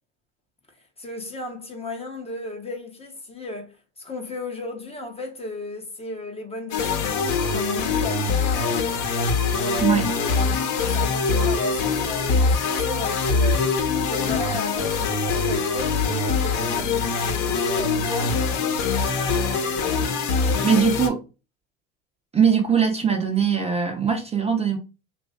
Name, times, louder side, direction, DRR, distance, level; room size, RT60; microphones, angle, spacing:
voice 1, 0.7-8.8 9.5-18.5 18.9-20.8, left 2 dB, 15° left, 0.8 m, -35 dB
sound 1, 6.7-21.1, left 4 dB, 55° left, 1.0 m, -23 dB
voice 2, 9.8-10.1 20.6-21.2 22.3-24.8, right 7 dB, 15° right, 0.7 m, -21 dB
3.0 x 2.6 x 3.6 m
hypercardioid pair, 100°, 37 cm